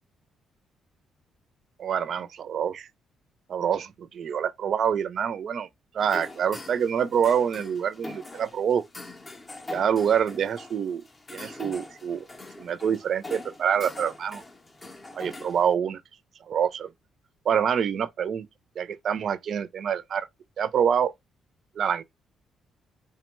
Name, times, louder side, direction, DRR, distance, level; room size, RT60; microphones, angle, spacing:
voice 1, 1.8-2.9 3.5-5.7 5.9-8.8 9.7-11.0 11.3-12.3 12.6-14.4 15.1-16.0 16.5-16.9 17.5-18.5 18.8-20.3 20.6-21.1 21.8-22.0, right 8 dB, 50° right, 0.4 m, -26 dB
sound 1, 6.0-15.7, left 2 dB, 20° left, 0.5 m, -43 dB
3.6 x 2.1 x 4.3 m
cardioid pair, 150°, 0 cm